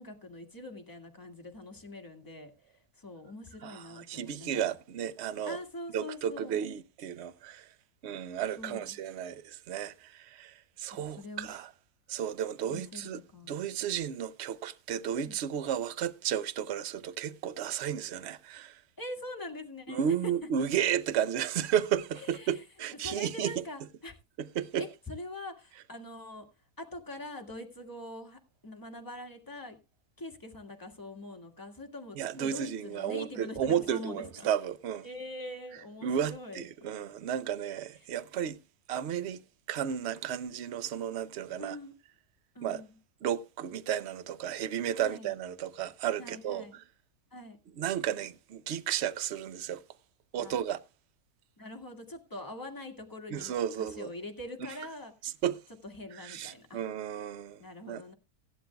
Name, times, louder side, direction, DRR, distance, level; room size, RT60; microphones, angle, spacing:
voice 1, 0.0-4.7 5.4-6.6 8.6-9.0 10.9-11.6 12.7-13.5 15.1-15.3 19.0-20.3 22.1-22.6 23.0-24.2 24.8-26.5 26.8-29.8 30.2-34.5 35.0-36.6 38.0-38.1 41.6-41.9 42.5-43.0 44.9-45.3 46.2-46.8 47.3-47.6 50.3-50.6 51.6-53.5 53.8-55.1 55.8-56.8 57.6-58.1, left 2 dB, 15° left, 1.7 m, -44 dB
voice 2, 3.6-5.6 5.9-7.7 8.0-11.7 12.1-13.2 13.5-18.8 19.9-23.6 24.4-24.8 32.2-35.0 36.0-38.6 38.9-39.4 39.7-41.8 42.6-42.8 43.2-46.6 47.8-49.8 50.3-50.8 53.3-54.1 55.2-55.6 56.2-58.0, right 9 dB, 55° right, 0.8 m, -33 dB
16.5 x 11.5 x 2.2 m
omnidirectional pair, 1.6 m